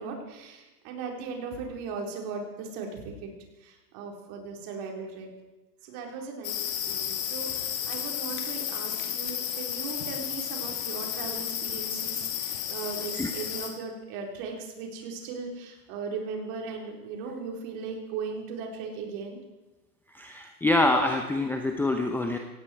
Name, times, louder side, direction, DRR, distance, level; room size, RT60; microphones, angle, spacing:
voice 1, 0.0-3.3 3.6-5.3 5.8-6.5 6.9-19.4, right 5 dB, 40° right, 1 dB, 4.5 m, -38 dB
sound 1, 6.4-13.7, left 10 dB, 50° left, 3.1 m, -32 dB
voice 2, 20.1-22.4, left 2 dB, 5° left, 4 dB, 0.7 m, -25 dB
18.0 x 16.5 x 4.7 m, 1.1 s
hypercardioid pair, 130°, 50 cm